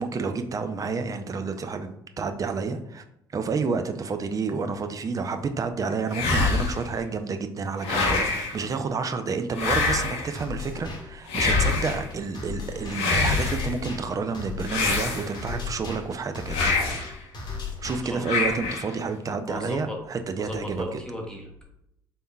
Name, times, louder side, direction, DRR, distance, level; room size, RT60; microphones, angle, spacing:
voice 1, 0.0-3.0 3.3-17.1 17.8-21.0, right 4 dB, 30° right, 7 dB, 0.4 m, -30 dB
sound 1, 6.1-6.9 7.8-8.6 9.5-10.3 11.3-12.1 12.9-13.7 14.7-15.5 16.5-17.1 18.2-18.9, left 3 dB, 60° left, 0.7 m, -25 dB
sound 2, 10.3-18.3, left 4 dB, 40° left, 0.9 m, -36 dB
voice 2, 18.0-18.4 19.5-20.0 20.4-21.7, left 1 dB, 5° left, 0 dB, 0.8 m, -36 dB
4.0 x 3.5 x 2.3 m, 0.79 s
figure-of-eight pair, 50°, 12 cm